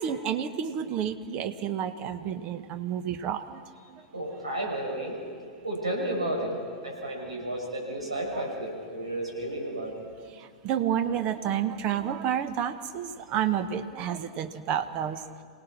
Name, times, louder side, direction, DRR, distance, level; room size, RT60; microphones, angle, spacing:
voice 1, 0.0-3.6 8.3-8.5 10.4-15.2, right 9 dB, 40° right, 10 dB, 1.2 m, -30 dB
voice 2, 4.1-5.1 5.6-6.5 6.8-9.9, right 1 dB, 80° right, -1 dB, 6.4 m, -32 dB
27.5 x 18.0 x 6.0 m, 2.3 s
figure-of-eight pair, 95°, 3 cm